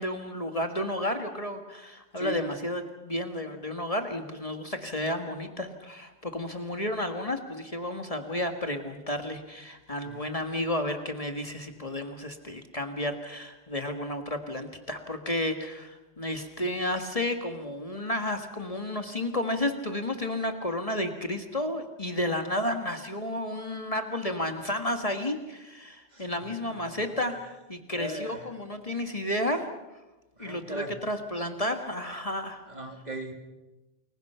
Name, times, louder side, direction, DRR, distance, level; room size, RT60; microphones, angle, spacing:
voice 1, 0.0-30.0 30.4-32.6, left 1 dB, 35° left, 5 dB, 1.8 m, -32 dB
voice 2, 27.9-28.5 30.4-30.9 32.7-33.3, right 1 dB, 40° right, 3 dB, 3.0 m, -37 dB
29.5 x 22.5 x 5.7 m, 1.1 s
omnidirectional pair, 1.1 m